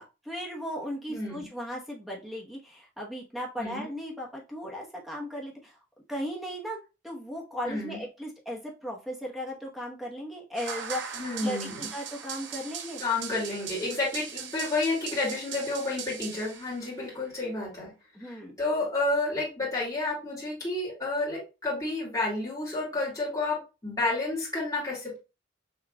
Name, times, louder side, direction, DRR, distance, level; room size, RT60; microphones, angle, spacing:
voice 1, 0.0-5.8 6.1-6.8 7.0-13.0 18.1-18.6, equal, ahead, -2 dB, 0.9 m, -37 dB
voice 2, 1.1-1.5 3.6-3.9 7.7-8.0 11.2-11.8 13.0-17.9 18.2-25.2, left 2 dB, 20° left, -7 dB, 2.1 m, -30 dB
sound 1, 10.6-17.0, right 7 dB, 65° right, 0.6 m, -40 dB
5.9 x 3.1 x 2.2 m, 0.28 s
head